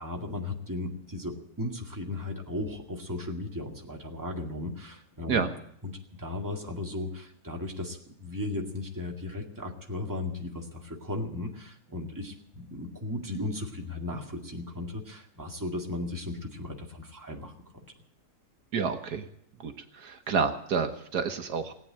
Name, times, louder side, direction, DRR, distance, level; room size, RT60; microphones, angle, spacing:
voice 1, 0.0-5.4 5.8-17.5, left 2 dB, 10° right, 0 dB, 2.0 m, -36 dB
voice 2, 18.7-19.3 19.6-21.7, right 5 dB, 75° right, 6 dB, 1.7 m, -29 dB
18.5 x 8.9 x 8.7 m, 0.68 s
omnidirectional pair, 1.7 m